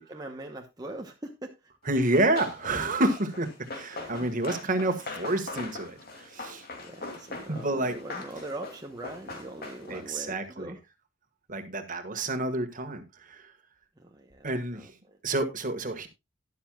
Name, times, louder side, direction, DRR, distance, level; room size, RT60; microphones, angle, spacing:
voice 1, 0.0-1.7 4.0-4.3 6.8-10.8 14.0-15.2, right 1 dB, 20° right, 1.0 m, -42 dB
Run, 1.9-10.1, left 3 dB, 50° left, 2.6 m, -41 dB
voice 2, 1.9-6.6 7.5-7.9 9.9-10.7 11.5-13.5 14.4-14.9 15.2-16.1, right 2 dB, 45° right, 1.6 m, -29 dB
12.5 x 11.0 x 2.3 m
head